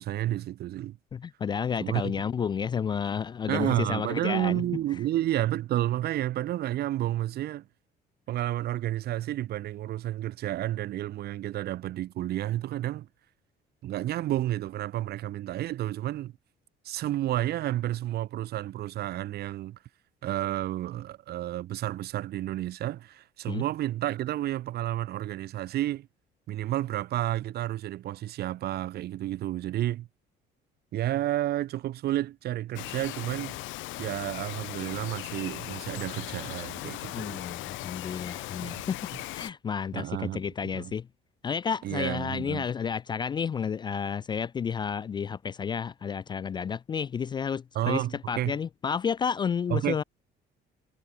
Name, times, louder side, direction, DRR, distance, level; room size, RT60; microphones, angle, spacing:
voice 1, 0.0-1.0 1.8-2.1 3.5-7.7 8.3-13.1 13.8-16.3 16.8-19.8 20.2-26.1 26.5-30.1 30.9-33.6 34.0-37.5 38.6-38.9 39.9-40.9 41.8-42.6 47.7-48.6 49.7-50.0, right 14 dB, 55° right, 6.2 m, -31 dB
voice 2, 1.1-4.6 23.5-23.6 37.1-41.1 41.4-50.0, left 7 dB, 25° left, 0.5 m, -31 dB
Bird vocalization bird call bird song, 32.8-39.5, left 19 dB, 90° left, 4.6 m, -38 dB
cardioid pair, 175°, 19 cm